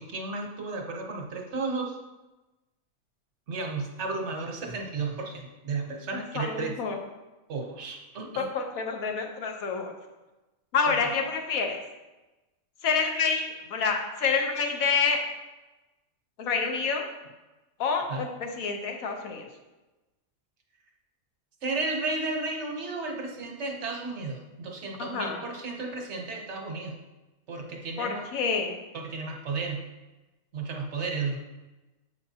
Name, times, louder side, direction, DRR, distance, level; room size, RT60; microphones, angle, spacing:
voice 1, 0.0-2.0 3.5-6.7 7.5-8.5 10.9-11.0 18.1-18.2 21.6-27.0 27.5-28.2 28.9-29.8 30.5-31.4, right 3 dB, 60° right, 2 dB, 1.1 m, -33 dB
voice 2, 6.1-7.0 8.3-9.9 10.7-11.8 12.8-15.3 16.4-17.1 17.8-19.4 25.0-25.4 28.0-28.8, left 5 dB, 80° left, 3 dB, 1.3 m, -28 dB
7.7 x 5.1 x 2.8 m, 1.1 s
omnidirectional pair, 1.4 m